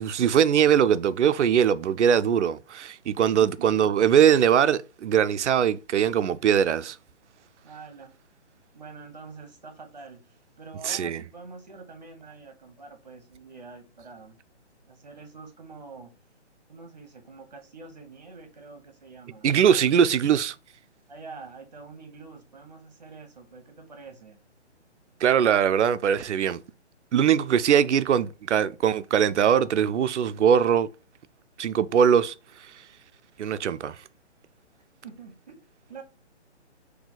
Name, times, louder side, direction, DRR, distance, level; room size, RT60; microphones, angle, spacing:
voice 1, 0.0-7.0 10.8-11.2 19.4-20.5 25.2-26.6 27.1-30.9 31.6-32.3 33.4-34.0, right 8 dB, 80° right, 0.5 m, -21 dB
voice 2, 3.4-3.7 7.6-8.1 8.7-14.4 14.9-16.1 16.7-19.5 21.1-24.4 35.0-36.0, right 4 dB, 35° right, 0.9 m, -46 dB
3.9 x 2.8 x 3.9 m
hypercardioid pair, 180°, 35 cm